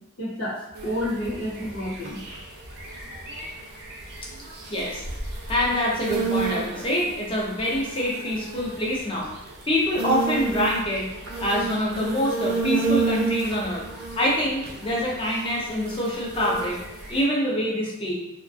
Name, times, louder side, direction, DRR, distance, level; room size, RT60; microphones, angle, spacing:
voice 1, 0.2-2.2, equal, 90° left, -10 dB, 1.0 m, -30 dB
sound 1, 0.7-17.2, right 4 dB, 50° right, 0.5 m, -32 dB
voice 2, 4.7-5.0 5.5-9.3 9.7-11.1 11.4-13.8 14.2-16.8 17.1-18.2, equal, 25° left, -3 dB, 0.5 m, -25 dB
2.3 x 2.2 x 2.5 m, 0.86 s
head